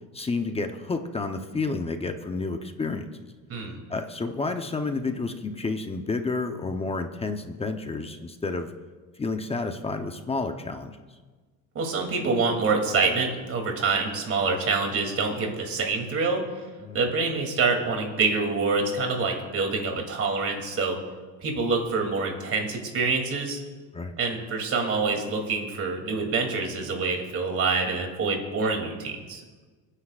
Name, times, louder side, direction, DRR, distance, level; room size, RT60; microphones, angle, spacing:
voice 1, 0.1-3.1 3.9-8.7 9.2-11.0 16.8-17.0 23.9-24.1, left 3 dB, 15° left, 6 dB, 0.8 m, -30 dB
voice 2, 3.5-3.8 11.7-16.4 16.9-21.0 21.4-23.6 24.2-29.4, right 4 dB, 40° right, 2 dB, 2.9 m, -26 dB
29.0 x 9.9 x 2.5 m, 1.4 s
cardioid pair, 120°, 34 cm